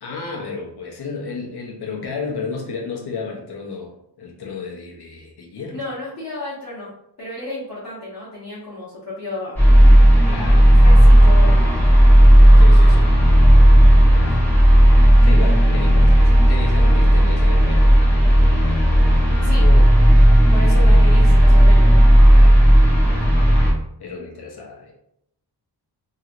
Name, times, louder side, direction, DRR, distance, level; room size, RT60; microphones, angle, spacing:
voice 1, 0.0-5.8 10.3-10.7 12.6-13.1 14.1-14.4 14.8-18.0 19.6-19.9 22.3-22.6 23.1-23.3 24.0-24.9, left 4 dB, 65° left, -1 dB, 0.9 m, -32 dB
voice 2, 5.7-6.9 7.2-9.6 10.7-11.9 19.4-19.7 20.5-22.0, left 1 dB, 40° left, -11 dB, 1.1 m, -32 dB
sound 1, 9.6-23.7, equal, 5° left, 1.1 m, -11 dB
3.1 x 2.9 x 2.5 m, 0.75 s
wide cardioid pair, 140°, 43 cm